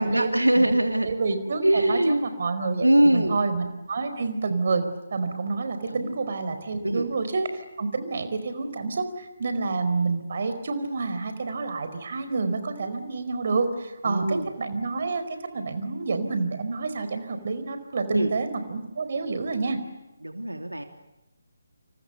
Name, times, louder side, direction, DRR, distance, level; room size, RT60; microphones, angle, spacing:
voice 1, 0.0-1.1 1.6-2.2 2.8-3.4 5.9-6.1 6.8-7.1 14.0-14.5 18.1-18.3 20.2-20.8, right 1 dB, 80° right, 5 dB, 3.1 m, -22 dB
voice 2, 1.0-4.8 5.1-19.8, right 4 dB, 45° right, 9 dB, 4.5 m, -28 dB
29.5 x 29.0 x 6.9 m, 0.97 s
figure-of-eight pair, 150°, 0 cm